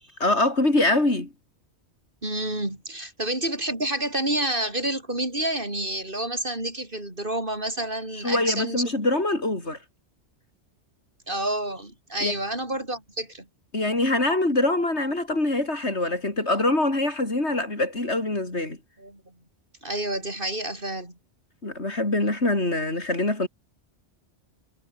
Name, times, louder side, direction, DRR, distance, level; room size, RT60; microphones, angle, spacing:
voice 1, 0.2-1.3 8.1-9.8 12.2-12.3 13.7-18.8 21.6-23.5, left 2 dB, 70° left, 5.3 m, -24 dB
voice 2, 2.2-8.8 11.3-13.5 19.0-19.2 19.8-21.2, right 1 dB, 50° right, 5.9 m, -29 dB
omnidirectional pair, 1.2 m